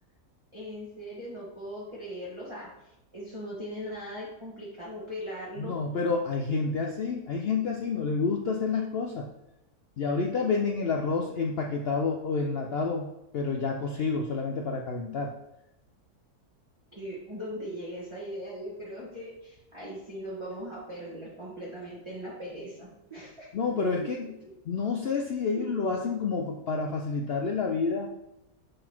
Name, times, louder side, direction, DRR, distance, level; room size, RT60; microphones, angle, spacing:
voice 1, 0.5-2.7 3.1-5.8 16.9-23.5 25.5-25.6, equal, 20° right, -7 dB, 1.3 m, -39 dB
voice 2, 5.6-9.3 10.0-13.1 13.3-15.3 23.5-24.3 24.7-28.1, left 4 dB, 75° left, 2 dB, 0.5 m, -29 dB
6.4 x 4.0 x 4.4 m, 0.91 s
omnidirectional pair, 1.7 m